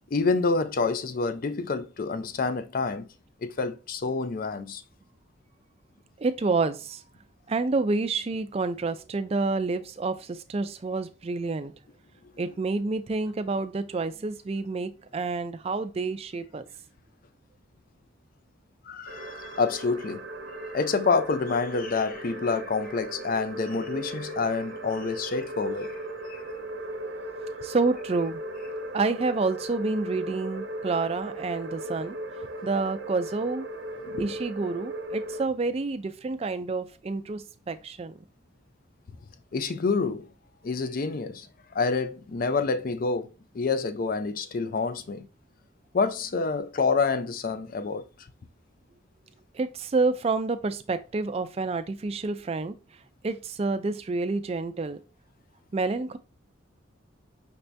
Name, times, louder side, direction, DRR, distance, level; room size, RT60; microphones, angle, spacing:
voice 1, 0.1-3.1 3.4-4.8 18.9-20.2 20.7-26.0 26.3-26.4 34.0-34.3 39.5-40.3 40.6-41.5 41.7-45.3 45.9-48.1, left 4 dB, 45° left, 0.4 m, -28 dB
voice 2, 6.2-7.0 7.5-11.7 12.4-16.6 27.6-28.4 28.9-32.2 32.6-33.7 34.2-38.1 49.5-52.7 53.2-55.0 55.7-56.2, right 3 dB, 30° right, 0.4 m, -28 dB
sound 1, 19.1-35.4, right 1 dB, 60° right, 0.7 m, -37 dB
5.9 x 2.7 x 3.3 m
head